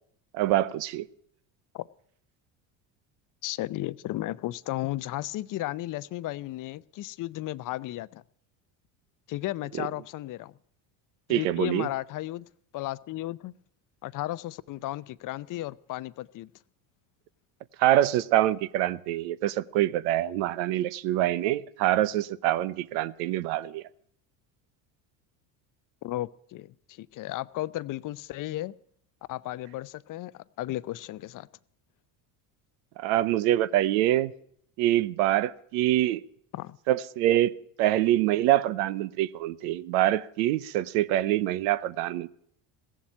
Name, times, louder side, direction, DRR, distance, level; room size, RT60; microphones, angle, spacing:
voice 1, 0.3-1.1 11.3-11.9 17.8-23.8 33.0-34.3 34.8-36.2 36.9-37.5 37.8-42.3, right 14 dB, 80° right, 0.8 m, -25 dB
voice 2, 3.4-8.2 9.3-10.5 11.3-12.5 12.7-13.5 14.0-16.5 26.0-28.7 29.3-31.5 36.5-36.8, left 16 dB, 45° left, 0.6 m, -34 dB
16.5 x 7.4 x 9.9 m
supercardioid pair, 85°, 44 cm